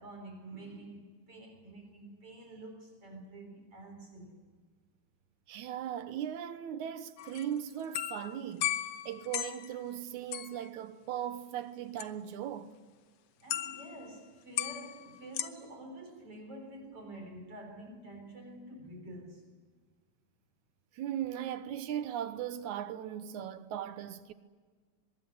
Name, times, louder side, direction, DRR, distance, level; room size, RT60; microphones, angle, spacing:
voice 1, 0.0-4.5 13.4-19.5, right 1 dB, 50° right, 4.8 m, -48 dB
voice 2, 5.5-12.7 20.9-24.3, right 10 dB, 80° right, 2.4 m, -38 dB
sound 1, 7.2-9.8 10.3-10.7 12.0-12.1 13.5-14.1 14.6-15.5, left 11 dB, 65° left, 1.8 m, -36 dB
24.5 x 21.5 x 9.5 m
omnidirectional pair, 3.4 m